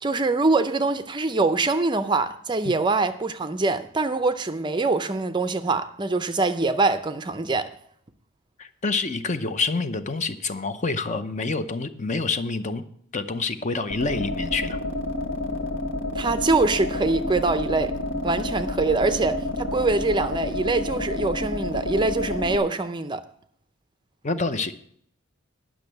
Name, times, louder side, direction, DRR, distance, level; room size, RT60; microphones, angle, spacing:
voice 1, 0.0-7.8 16.1-18.0 18.2-23.2, right 3 dB, 20° right, 0.5 m, -24 dB
voice 2, 8.6-12.8 13.1-14.8 24.2-24.7, left 3 dB, 35° left, 0.7 m, -27 dB
sound 1, 13.9-22.6, left 1 dB, 60° left, 1.5 m, -29 dB
10.5 x 6.2 x 7.8 m
head